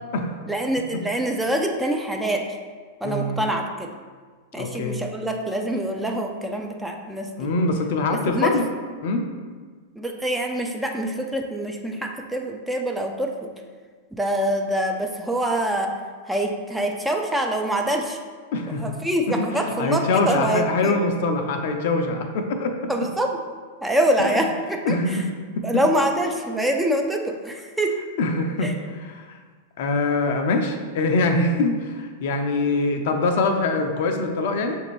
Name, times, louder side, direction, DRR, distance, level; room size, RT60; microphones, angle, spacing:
voice 1, 0.5-2.6 3.0-3.9 4.5-7.5 8.1-8.6 10.0-13.5 14.1-16.0 16.3-18.2 18.8-21.0 22.9-23.4 23.8-25.3 25.6-28.0 28.6-28.8, right 1 dB, 5° right, 2 dB, 0.4 m, -25 dB
voice 2, 3.0-3.4 4.6-5.0 7.4-8.6 9.0-9.3 18.5-18.8 19.8-22.9 24.2-24.3 24.9-25.2 25.6-25.7 28.2-28.7 29.0-29.2 29.8-34.8, left 3 dB, 60° left, 4 dB, 0.5 m, -23 dB
6.4 x 2.6 x 3.1 m, 1.5 s
figure-of-eight pair, 100°, 0 cm